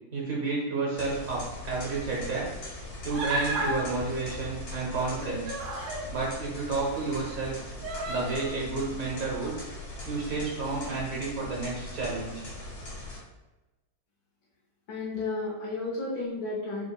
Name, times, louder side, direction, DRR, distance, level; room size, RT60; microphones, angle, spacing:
voice 1, 0.1-2.5 3.0-5.5 6.1-7.6 8.1-9.5 10.0-12.4, right 3 dB, 55° right, -3 dB, 1.1 m, -31 dB
sound 1, 0.9-13.2, left 2 dB, 65° left, 2.0 m, -40 dB
Human voice, 3.1-3.8 5.0-6.1 6.8-6.9 7.8-8.5, right 2 dB, 90° right, 1.5 m, -32 dB
voice 2, 14.9-16.9, left 3 dB, 80° left, -5 dB, 1.6 m, -32 dB
4.9 x 2.8 x 2.3 m, 1.1 s
omnidirectional pair, 2.0 m